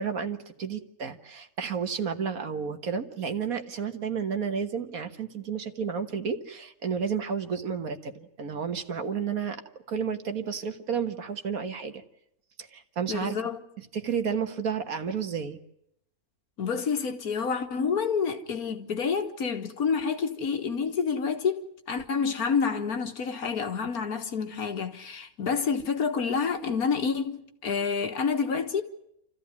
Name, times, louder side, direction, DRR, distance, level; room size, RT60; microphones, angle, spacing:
voice 1, 0.0-9.6 9.9-12.0 12.6-13.4 13.9-15.6, right 6 dB, 65° right, 1.8 m, -31 dB
voice 2, 13.1-13.6 16.6-28.8, left 6 dB, 70° left, 1.9 m, -28 dB
28.0 x 14.5 x 9.6 m
omnidirectional pair, 1.6 m